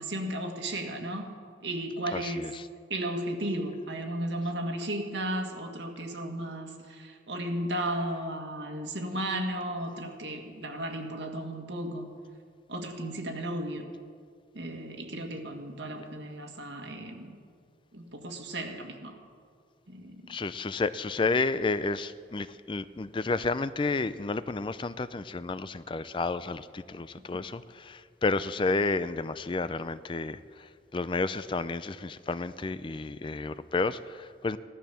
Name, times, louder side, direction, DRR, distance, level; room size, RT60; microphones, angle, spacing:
voice 1, 0.0-1.3 1.6-2.5 2.9-12.1 12.7-13.9 14.5-17.4 17.9-19.2 19.9-20.3, right 1 dB, 80° right, 3 dB, 2.0 m, -34 dB
voice 2, 2.1-2.6 20.3-34.6, left 3 dB, 30° left, 14 dB, 0.4 m, -31 dB
16.5 x 12.0 x 7.0 m, 2.1 s
head